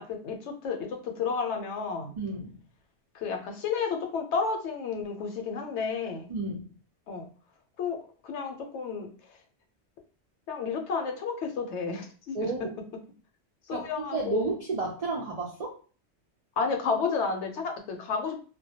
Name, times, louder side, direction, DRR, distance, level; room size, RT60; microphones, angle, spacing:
voice 1, 0.0-2.1 3.1-6.3 7.1-7.3 7.8-9.1 10.5-12.7 13.7-14.5 16.6-18.4, left 5 dB, 75° left, 4 dB, 0.9 m, -31 dB
voice 2, 2.2-2.6 6.3-6.7 12.3-12.7 13.7-15.7, right 3 dB, 70° right, -1 dB, 0.3 m, -32 dB
2.1 x 2.1 x 2.7 m, 0.39 s
omnidirectional pair, 1.2 m